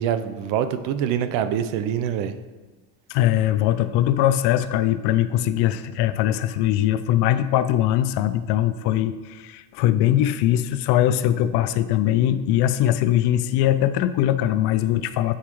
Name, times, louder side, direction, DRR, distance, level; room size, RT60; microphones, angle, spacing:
voice 1, 0.0-2.3, right 9 dB, 80° right, 11 dB, 0.6 m, -25 dB
voice 2, 3.1-15.3, left 12 dB, 70° left, 13 dB, 0.5 m, -21 dB
8.7 x 4.7 x 3.0 m, 1.3 s
cardioid pair, 135°, 42 cm